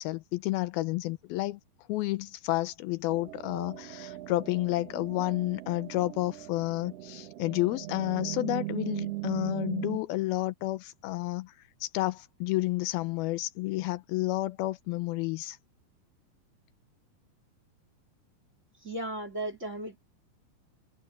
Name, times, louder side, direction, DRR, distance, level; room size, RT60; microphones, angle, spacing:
voice 1, 0.0-1.6 1.9-11.5 11.8-15.6, left 18 dB, 80° left, 2.5 m, -30 dB
sound 1, 3.1-10.0, right 17 dB, 70° right, 1.5 m, -39 dB
voice 2, 18.8-20.0, right 1 dB, 20° right, 2.5 m, -35 dB
omnidirectional pair, 4.4 m